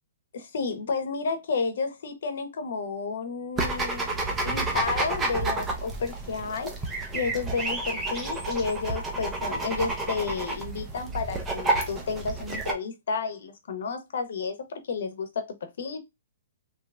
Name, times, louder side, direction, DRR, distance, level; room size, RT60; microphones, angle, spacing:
voice 1, 0.3-16.0, left 5 dB, 65° left, 0.8 m, -32 dB
sound 1, 3.6-12.7, right 2 dB, 10° right, 0.5 m, -30 dB
2.9 x 2.4 x 3.2 m
hypercardioid pair, 170°, 0 cm